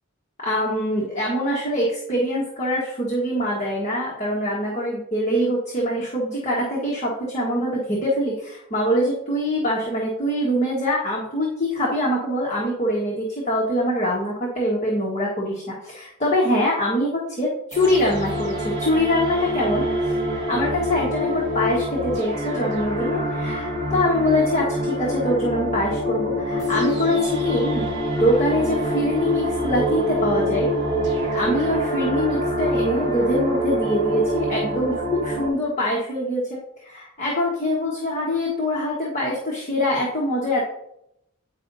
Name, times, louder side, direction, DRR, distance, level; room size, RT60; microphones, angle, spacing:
voice 1, 0.4-19.8 20.3-27.8 28.2-30.7 31.3-40.6, left 1 dB, 30° left, -4 dB, 1.3 m, -24 dB
sound 1, 17.7-35.5, equal, 55° right, 1.5 m, -25 dB
9.5 x 5.0 x 2.7 m, 0.77 s
head